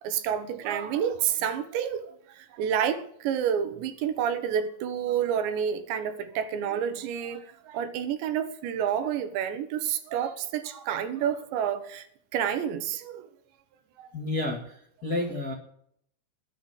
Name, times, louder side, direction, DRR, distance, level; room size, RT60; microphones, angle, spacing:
voice 1, 0.0-12.1 12.3-13.3 14.0-14.1, right 8 dB, 80° right, 3.5 m, -29 dB
voice 2, 14.1-14.7 15.0-15.5, left 2 dB, 30° left, 1.9 m, -30 dB
20.5 x 7.8 x 8.3 m
omnidirectional pair, 5.2 m